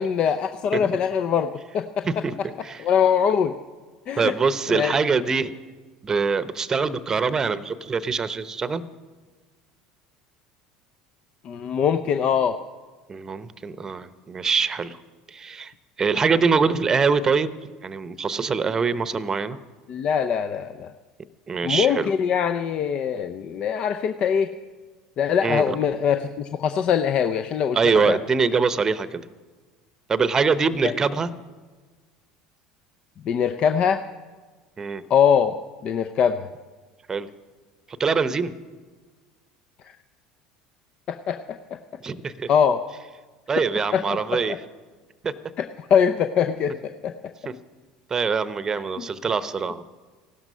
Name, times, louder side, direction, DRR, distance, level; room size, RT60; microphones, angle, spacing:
voice 1, 0.0-2.2 2.6-3.5 4.1-4.3 4.7-5.0 11.4-12.6 19.9-20.9 21.6-24.5 25.2-28.2 30.8-30.9 33.2-34.0 35.1-35.6 35.8-36.5 39.8-39.9 41.1-41.6 42.5-42.8 43.9-44.6 45.6-47.1 49.0-49.1, left 7 dB, 45° left, 9 dB, 0.6 m, -23 dB
voice 2, 4.2-5.5 6.0-8.9 13.1-15.0 15.3-15.7 16.0-17.5 17.8-19.6 21.5-22.1 25.4-25.8 27.7-29.2 30.1-31.3 34.8-35.0 37.1-37.3 38.0-38.5 42.0-42.5 43.5-44.6 45.2-45.3 47.5-47.6 48.1-49.8, right 5 dB, 25° right, 15 dB, 0.8 m, -23 dB
16.0 x 12.0 x 5.5 m, 1.4 s
hypercardioid pair, 70°, 2 cm